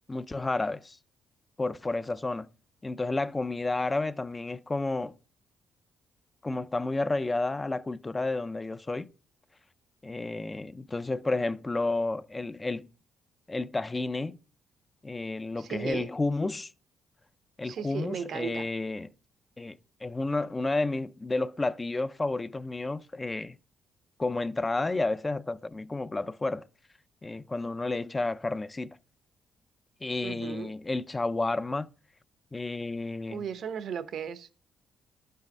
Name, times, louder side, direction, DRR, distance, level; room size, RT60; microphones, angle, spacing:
voice 1, 0.1-1.0 1.6-2.5 2.8-5.2 6.4-9.1 10.0-12.9 13.5-14.4 15.0-16.7 17.6-19.1 19.6-23.6 24.2-26.7 27.2-29.0 30.0-31.9 32.5-33.5, left 2 dB, 20° left, 0.4 m, -31 dB
voice 2, 15.6-16.1 17.6-18.7 30.2-30.7 33.3-34.5, right 7 dB, 65° right, 0.8 m, -36 dB
11.0 x 5.5 x 5.2 m
cardioid pair, 90°, 0 cm